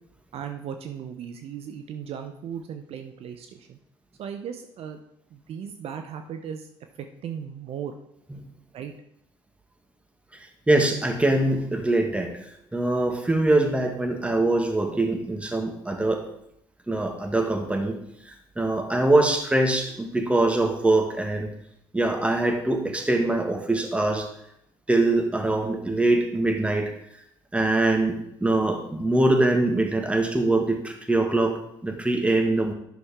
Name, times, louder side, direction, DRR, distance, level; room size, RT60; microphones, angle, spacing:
voice 1, 0.3-3.8 4.2-5.0 5.3-6.7 7.0-8.0 8.7-8.9, right 8 dB, 55° right, 6 dB, 0.7 m, -37 dB
voice 2, 10.3-12.4 12.7-16.2 16.9-18.0 18.2-21.5 21.9-24.3 24.9-26.9 27.5-32.7, right 2 dB, 10° right, 4 dB, 1.6 m, -23 dB
10.5 x 6.2 x 3.6 m, 0.76 s
hypercardioid pair, 65°, 12 cm